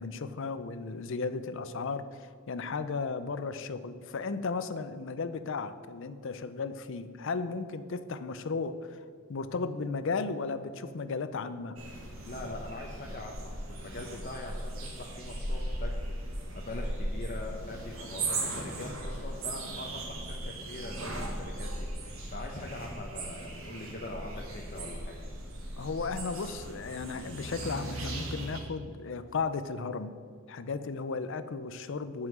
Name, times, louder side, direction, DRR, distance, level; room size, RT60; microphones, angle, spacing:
voice 1, 0.0-9.0 9.3-11.8 25.8-30.1 30.5-32.3, left 4 dB, 65° left, 12 dB, 0.5 m, -35 dB
sound 1, 11.8-28.6, right 1 dB, 85° right, 1.8 m, -38 dB
voice 2, 12.3-25.1, left 2 dB, 45° left, 0 dB, 0.9 m, -42 dB
7.9 x 5.6 x 7.7 m, 2.1 s
head